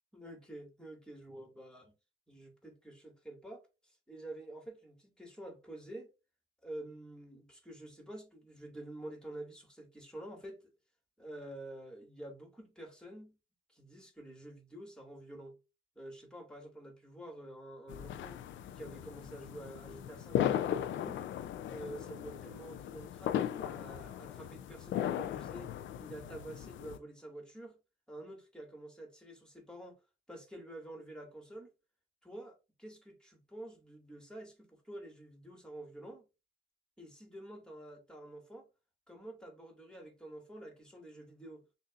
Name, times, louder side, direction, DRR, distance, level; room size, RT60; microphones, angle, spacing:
voice 1, 0.1-1.9 2.3-3.6 4.1-6.1 6.6-10.7 11.2-13.4 13.7-15.6 16.0-18.4 18.8-21.2 21.7-25.7 26.0-27.8 28.1-30.0 30.3-31.7 32.2-36.2 37.0-38.7 39.1-41.6, right 1 dB, 5° left, 2.1 m, -48 dB
sound 1, 17.9-27.0, left 10 dB, 70° left, 0.5 m, -37 dB
6.3 x 2.7 x 2.5 m
cardioid pair, 90°, 20 cm